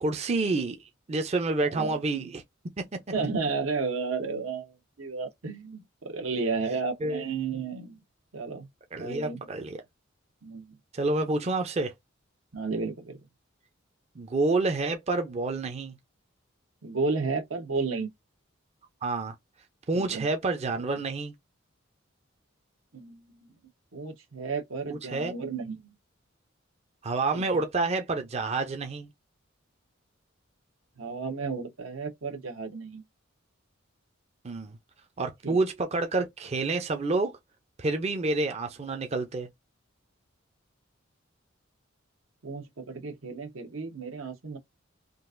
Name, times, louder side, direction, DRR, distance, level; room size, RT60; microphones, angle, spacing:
voice 1, 0.0-2.4 2.8-2.9 7.0-7.2 8.9-9.8 10.9-11.9 14.2-16.0 19.0-19.3 19.9-21.3 24.9-25.4 27.0-29.1 34.4-34.8 35.2-37.4 37.8-39.5, right 3 dB, 30° right, 0.5 m, -28 dB
voice 2, 1.7-2.3 3.1-8.0 8.3-8.7 9.0-9.4 10.4-10.8 12.5-13.2 16.8-18.1 19.9-20.2 22.9-23.2 23.9-25.8 27.3-27.4 31.0-33.0 35.4-35.6 42.4-44.6, right 4 dB, 80° right, 0.9 m, -32 dB
3.8 x 2.5 x 2.5 m
head